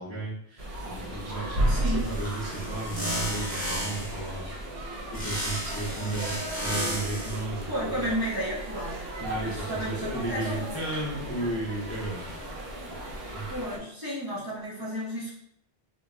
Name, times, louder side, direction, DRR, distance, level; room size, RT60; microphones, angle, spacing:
voice 1, 0.0-4.5 5.1-8.1 9.2-12.5 12.8-13.5, right 2 dB, 25° left, -7 dB, 0.3 m, -34 dB
sound 1, 0.6-13.8, right 1 dB, 65° right, 0.9 m, -34 dB
voice 2, 1.7-2.1 7.7-9.0 9.4-10.8 13.5-15.4, equal, 25° right, -8 dB, 0.6 m, -33 dB
sound 2, 2.0-4.2 5.1-7.4, equal, 10° left, 0.9 m, -34 dB
2.2 x 2.1 x 3.6 m, 0.73 s
omnidirectional pair, 1.1 m